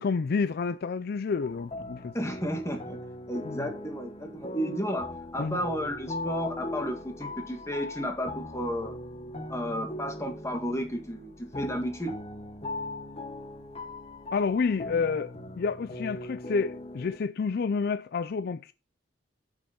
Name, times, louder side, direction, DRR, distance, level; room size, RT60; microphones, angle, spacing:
voice 1, 0.0-2.1 3.4-3.7 5.4-5.6 14.3-18.7, left 5 dB, 55° left, 0.4 m, -29 dB
sound 1, 1.4-17.2, left 2 dB, 35° left, 1.2 m, -40 dB
voice 2, 2.1-3.0 3.3-5.1 5.3-8.9 9.5-12.1, equal, 15° left, 2.0 m, -32 dB
8.3 x 6.4 x 5.3 m
head